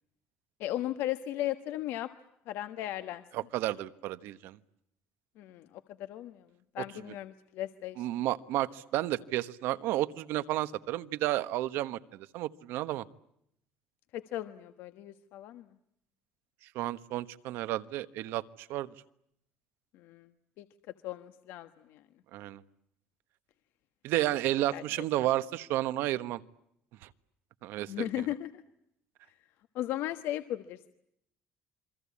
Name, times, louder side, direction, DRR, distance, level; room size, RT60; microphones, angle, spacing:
voice 1, 0.6-2.1 2.5-3.2 5.4-6.5 6.7-8.1 14.1-15.7 19.9-20.3 20.6-20.7 21.0-22.0 24.7-25.0 27.9-28.6 29.7-30.9, left 13 dB, 75° left, 10 dB, 1.4 m, -36 dB
voice 2, 3.3-4.6 6.8-6.9 8.0-13.0 16.7-18.9 22.3-22.6 24.0-26.4 27.0-27.1 27.6-27.9, right 15 dB, 75° right, 13 dB, 1.3 m, -32 dB
28.0 x 24.0 x 8.6 m, 0.77 s
cardioid pair, 160°, 4 cm